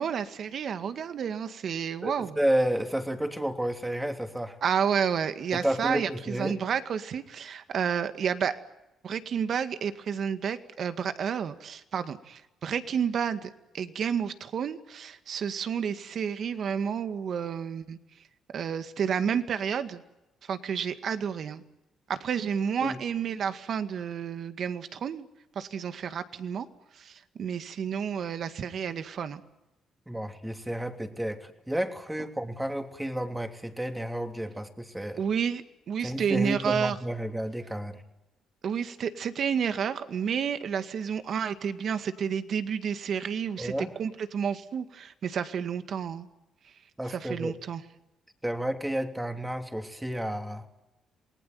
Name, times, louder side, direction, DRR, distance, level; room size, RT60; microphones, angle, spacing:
voice 1, 0.0-2.4 4.6-8.6 9.0-18.0 18.5-20.0 20.5-21.6 22.1-25.3 25.6-26.7 27.0-29.4 35.2-37.0 38.6-43.7 44.0-46.3 47.1-47.8, right 7 dB, 60° right, 10 dB, 2.0 m, -30 dB
voice 2, 2.0-4.6 5.5-6.6 22.8-23.0 30.1-35.2 36.0-38.0 43.6-43.9 47.0-47.5 48.4-50.6, right 1 dB, 10° right, 6 dB, 3.1 m, -31 dB
28.0 x 19.5 x 9.3 m, 0.95 s
cardioid pair, 90°, 0 cm